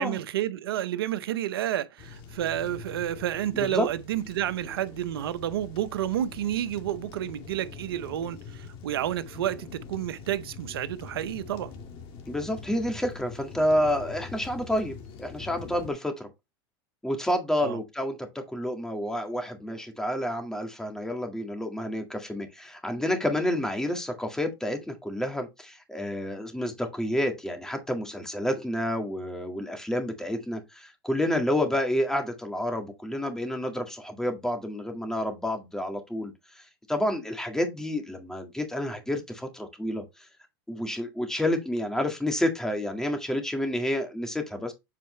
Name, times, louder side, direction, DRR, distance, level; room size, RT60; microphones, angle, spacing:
voice 1, 0.0-11.7 17.6-17.8, right 12 dB, 85° right, 0.7 m, -30 dB
sound 1, 2.0-15.9, left 5 dB, 45° left, 1.7 m, -44 dB
voice 2, 3.5-3.9 12.3-16.3 17.0-40.0 40.7-44.7, left 1 dB, 5° left, 1.8 m, -29 dB
7.6 x 4.2 x 3.2 m
supercardioid pair, 120°, 12 cm